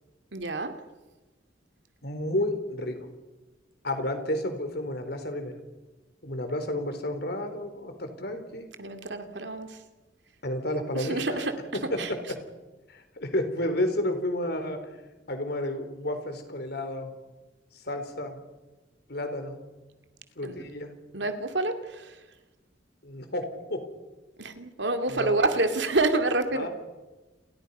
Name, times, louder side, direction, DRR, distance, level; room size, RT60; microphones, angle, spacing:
voice 1, 0.3-0.7 8.8-9.8 10.9-11.6 12.0-12.1 20.4-20.6 21.1-22.2 24.4-26.7, right 2 dB, 70° right, 6 dB, 2.6 m, -28 dB
voice 2, 2.0-3.0 3.8-5.6 6.2-8.7 10.4-11.4 11.7-12.0 12.9-14.8 15.3-17.1 17.7-18.4 19.1-19.6 20.4-21.0 23.0-23.8 25.1-25.4 26.6-26.7, left 1 dB, 60° left, 7 dB, 4.1 m, -31 dB
29.5 x 22.0 x 5.6 m, 1.2 s
head